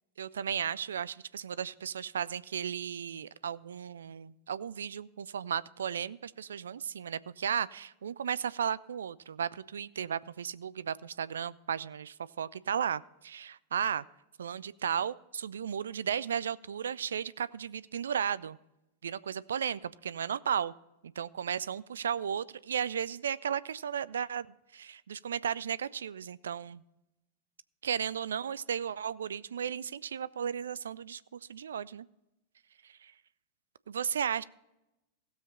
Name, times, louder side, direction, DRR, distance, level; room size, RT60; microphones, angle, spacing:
voice 1, 0.2-14.0 14.4-18.6 19.0-20.7 21.2-24.5 24.7-26.8 27.8-32.1 32.8-33.1 33.9-34.4, right 8 dB, 65° right, 19 dB, 0.3 m, -35 dB
16.5 x 7.4 x 4.2 m, 0.91 s
figure-of-eight pair, 90°, 0 cm